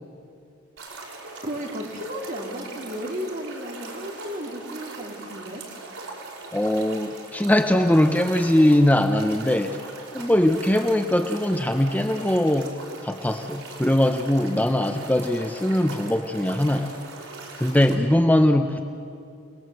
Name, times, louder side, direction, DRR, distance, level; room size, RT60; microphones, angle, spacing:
sound 1, 0.8-17.9, right 3 dB, 90° right, 5.3 m, -40 dB
voice 1, 1.4-5.6, equal, 40° right, 1 dB, 3.0 m, -34 dB
voice 2, 6.5-9.8 10.1-12.7 13.0-16.9 17.6-18.8, left 1 dB, 10° left, 6 dB, 0.8 m, -21 dB
29.5 x 20.0 x 7.8 m, 2.5 s
head